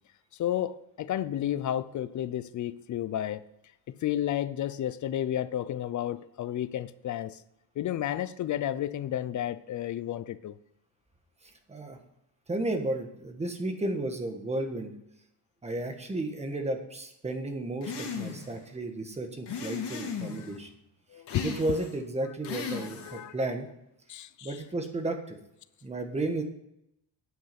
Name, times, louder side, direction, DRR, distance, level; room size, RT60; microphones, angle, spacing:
voice 1, 0.4-3.4 3.9-7.4 7.8-10.6 21.1-21.5 22.7-23.3 24.1-24.6, left 11 dB, 45° left, 0.5 m, -32 dB
voice 2, 12.5-15.0 15.6-20.7 21.4-23.7 24.4-25.4 25.8-26.4, right 2 dB, 15° right, 1.3 m, -33 dB
sound 1, 17.8-18.6 19.5-20.5 21.3-22.0 22.4-23.2, left 5 dB, 80° left, 2.3 m, -36 dB
9.5 x 8.0 x 5.8 m
cardioid pair, 165°, 40 cm